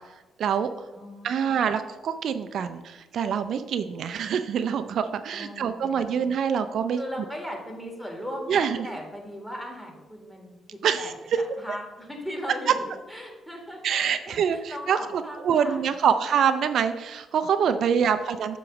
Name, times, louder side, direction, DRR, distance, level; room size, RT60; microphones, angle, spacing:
voice 1, 0.4-0.7 1.2-7.0 8.5-8.8 10.8-11.1 13.8-18.6, right 7 dB, 65° right, 9 dB, 0.3 m, -25 dB
voice 2, 0.9-1.6 5.3-6.3 7.0-11.1 11.6-16.4, equal, 5° left, 1 dB, 1.8 m, -39 dB
7.6 x 3.0 x 6.0 m, 1.2 s
cardioid pair, 90°, 0 cm